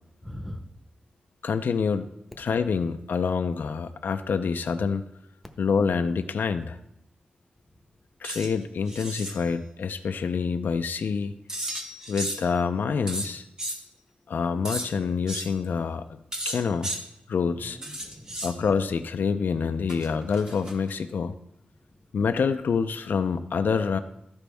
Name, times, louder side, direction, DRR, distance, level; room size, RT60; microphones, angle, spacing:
voice 1, 0.2-0.7 7.7-8.0 17.5-18.5 21.8-22.2, left 1 dB, ahead, 4 dB, 0.9 m, -42 dB
voice 2, 1.4-2.1 2.4-5.0 5.6-6.8 8.2-11.3 12.1-13.4 14.3-16.0 16.5-16.9 17.3-17.8 18.4-21.3 22.1-24.0, left 5 dB, 80° left, 9 dB, 0.4 m, -26 dB
sound 1, 8.2-8.5 8.9-9.4 11.5-12.5 13.1-13.8 14.6-14.9 15.3-15.5 16.3-17.0 17.8-18.5 19.9-20.9, right 1 dB, 25° right, 1.1 m, -34 dB
13.5 x 5.1 x 3.4 m, 0.80 s
wide cardioid pair, 120°, 3 cm